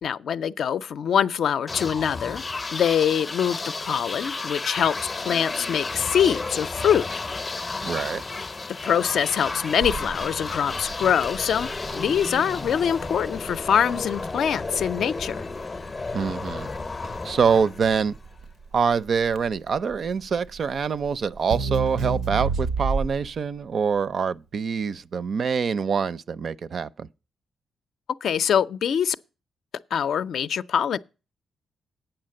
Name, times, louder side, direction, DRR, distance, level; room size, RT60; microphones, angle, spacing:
voice 1, 0.0-2.4 2.7-7.1 8.8-15.4 28.2-29.2 29.9-31.0, left 8 dB, 70° left, 0.5 m, -24 dB
sound 1, 1.7-18.4, left 3 dB, 25° left, 0.6 m, -33 dB
voice 2, 7.8-8.2 16.1-16.7 17.2-18.2 18.7-27.1, right 6 dB, 50° right, 0.5 m, -25 dB
Crackle, 9.8-23.4, right 4 dB, 90° right, 0.7 m, -32 dB
9.0 x 5.7 x 7.6 m
cardioid pair, 110°, 0 cm